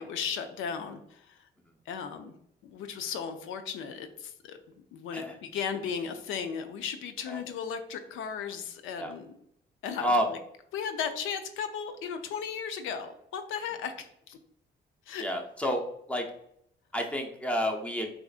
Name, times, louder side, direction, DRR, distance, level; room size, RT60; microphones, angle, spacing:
voice 1, 0.0-1.5 1.9-2.3 2.6-9.3 9.8-10.4 10.7-14.4 15.1-15.3, left 7 dB, 85° left, 8 dB, 0.5 m, -36 dB
voice 2, 15.2-15.8 16.1-16.3 16.9-18.1, equal, 5° left, 2 dB, 0.7 m, -29 dB
4.7 x 2.5 x 2.4 m, 0.71 s
cardioid pair, 90°, 20 cm